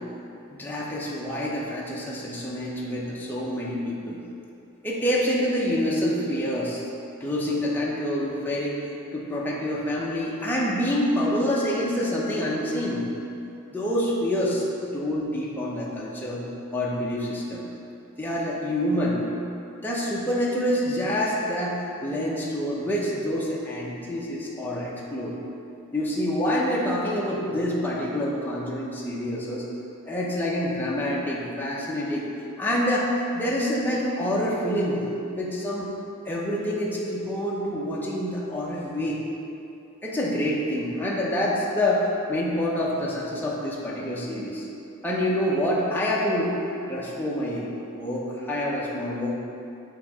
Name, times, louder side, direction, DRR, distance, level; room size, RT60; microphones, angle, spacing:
voice 1, 0.5-4.2 4.8-6.8 7.2-8.8 9.1-13.0 13.7-14.6 14.9-16.4 16.7-17.6 18.2-19.2 19.8-25.4 25.9-29.6 30.1-32.2 32.6-35.0 35.3-35.9 36.2-39.2 40.0-44.7 45.0-46.5 46.9-49.3, equal, 10° left, -5 dB, 0.9 m, -27 dB
9.1 x 3.2 x 4.9 m, 2.7 s
head